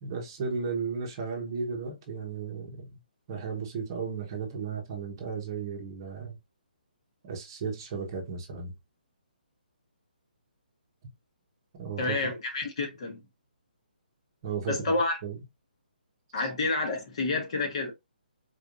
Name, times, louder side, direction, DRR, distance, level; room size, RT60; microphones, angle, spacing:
voice 1, 0.0-3.0 3.3-6.3 7.2-8.7 11.8-12.1 14.4-14.7 15.2-15.4, right 5 dB, 25° right, 1.0 m, -34 dB
voice 2, 12.0-13.2 14.7-15.2 16.3-17.9, left 3 dB, 40° left, 1.3 m, -29 dB
4.2 x 3.4 x 2.5 m
hypercardioid pair, 175°, 5 cm